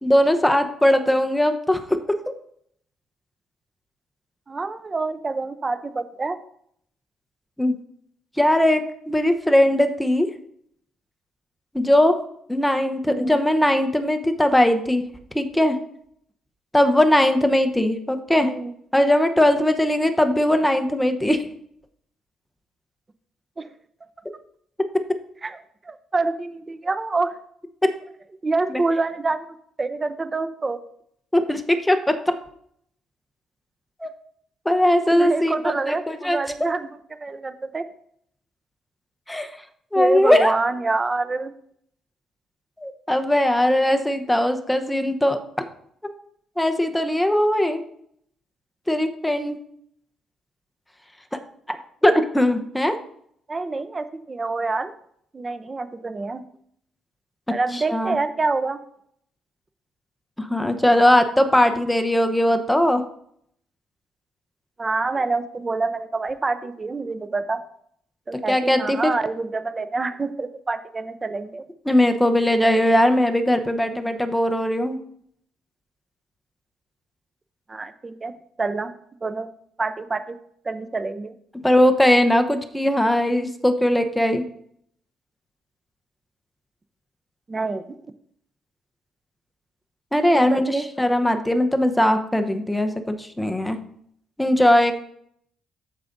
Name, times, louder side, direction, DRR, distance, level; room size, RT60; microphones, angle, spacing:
voice 1, 0.0-1.8 7.6-7.7 8.4-10.3 11.7-12.2 12.5-15.0 15.3-15.8 16.7-18.5 18.9-21.5 28.7-28.8 31.3-32.2 34.0-34.1 34.6-36.4 39.3-39.5 39.9-40.5 42.8-45.4 46.6-47.8 48.9-49.6 51.7-51.8 52.0-53.0 57.7-58.1 60.4-63.0 68.5-69.1 71.9-75.0 81.6-84.4 90.1-93.8 94.4-95.0, left 1 dB, 5° left, 7 dB, 0.9 m, -19 dB
voice 2, 4.5-6.4 13.1-13.4 18.4-18.7 23.6-23.7 25.4-25.6 25.8-27.4 28.4-29.5 29.8-30.8 35.1-36.9 37.2-37.8 39.9-41.5 53.5-54.9 55.3-56.4 57.5-58.8 60.9-61.2 64.8-67.6 68.3-71.6 73.8-74.1 77.7-78.3 78.6-78.9 79.2-79.5 79.8-80.4 80.6-81.4 87.5-88.0 90.3-90.9, right 3 dB, 25° right, 11 dB, 0.7 m, -26 dB
14.0 x 4.9 x 2.6 m, 0.68 s
cardioid pair, 90°, 0 cm